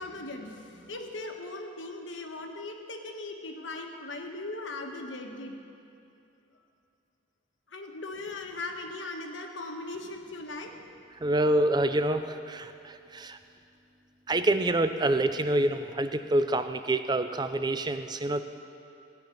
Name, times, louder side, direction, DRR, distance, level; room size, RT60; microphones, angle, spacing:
voice 1, 0.0-5.6 7.7-10.7, left 2 dB, 75° left, 3 dB, 1.3 m, -39 dB
voice 2, 11.2-13.4 14.3-18.4, right 1 dB, 20° right, 9 dB, 0.5 m, -27 dB
16.0 x 5.8 x 8.9 m, 2.7 s
head